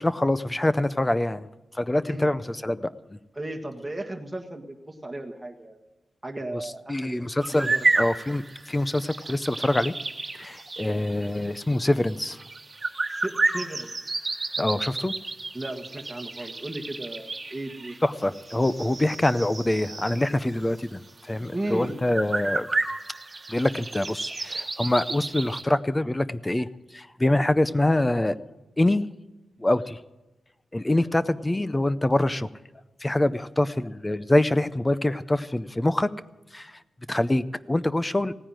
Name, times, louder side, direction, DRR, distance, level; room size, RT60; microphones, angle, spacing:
voice 1, 0.0-1.5 1.8-2.9 6.9-7.7 8.0-9.9 10.3-12.4 14.6-15.1 18.0-22.7 23.5-26.7 26.9-28.4 28.8-29.0 29.6-30.0 30.7-32.5 33.0-36.1 36.5-36.7 37.1-38.3, left 1 dB, 15° left, 14 dB, 0.5 m, -25 dB
voice 2, 3.3-5.8 6.2-7.2 7.5-7.9 13.1-14.1 15.5-17.9 21.5-22.0, right 1 dB, 10° right, 0 dB, 1.6 m, -35 dB
sound 1, 7.4-20.3 20.8-20.9 21.4-21.5 21.7-25.6, right 3 dB, 30° right, 1.5 m, -31 dB
17.0 x 9.9 x 7.6 m, 1.1 s
wide cardioid pair, 115°, 0 cm